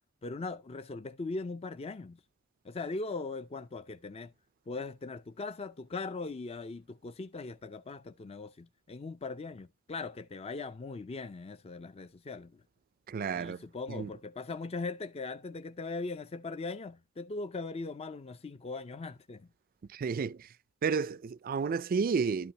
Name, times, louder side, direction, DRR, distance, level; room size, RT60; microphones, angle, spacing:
voice 1, 0.2-2.2 2.6-4.3 4.7-12.6 13.3-19.4, left 3 dB, 30° left, 0.4 m, -40 dB
voice 2, 13.1-13.6 13.9-14.1 19.9-20.5 20.8-22.5, right 5 dB, 45° right, 0.4 m, -31 dB
12.5 x 5.6 x 2.9 m
head